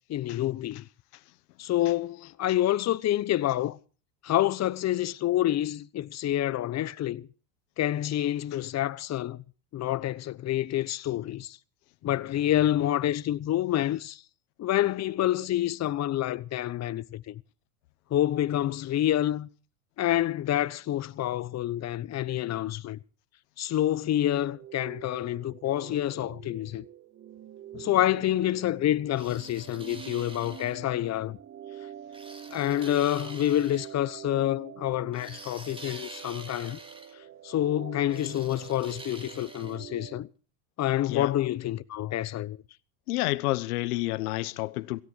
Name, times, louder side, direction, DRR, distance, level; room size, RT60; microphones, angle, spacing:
voice 1, 0.1-0.8 1.6-3.8 4.2-7.3 7.8-9.4 9.7-11.6 12.0-14.2 14.6-17.4 18.1-19.5 20.0-23.0 23.6-26.8 27.7-31.4 32.5-36.8 37.4-40.3 40.8-42.6, left 13 dB, 35° left, 1.0 m, -28 dB
sound 1, 24.3-40.2, right 10 dB, 30° right, 1.2 m, -46 dB
sound 2, 29.2-30.8 32.1-33.9 35.1-37.1 38.1-39.8, right 2 dB, 10° right, 3.0 m, -46 dB
voice 2, 43.1-45.0, left 19 dB, 75° left, 1.2 m, -29 dB
17.5 x 16.5 x 4.6 m
supercardioid pair, 105°, 45 cm